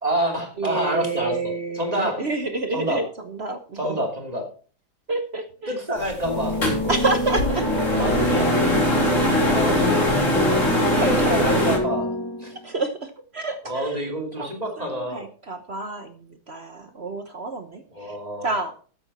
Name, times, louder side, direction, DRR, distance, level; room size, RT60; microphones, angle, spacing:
voice 1, 0.0-2.2 2.7-3.0 3.8-4.4 5.7-6.6 8.0-8.5 11.0-12.1 12.4-12.5 13.6-15.3 17.9-18.5, equal, 20° right, 2 dB, 2.8 m, -27 dB
voice 2, 0.6-4.1 5.1-5.8 6.9-7.7 7.9-8.0 8.9-11.6 12.6-14.0 14.4-14.5 14.8-18.2 18.4-18.7, right 3 dB, 45° right, 8 dB, 0.9 m, -29 dB
sound 1, 6.0-11.8, left 1 dB, 35° left, 3.5 m, -22 dB
sound 2, 6.2-12.6, left 1 dB, 15° left, 0.9 m, -26 dB
13.0 x 8.2 x 4.2 m, 0.40 s
omnidirectional pair, 2.3 m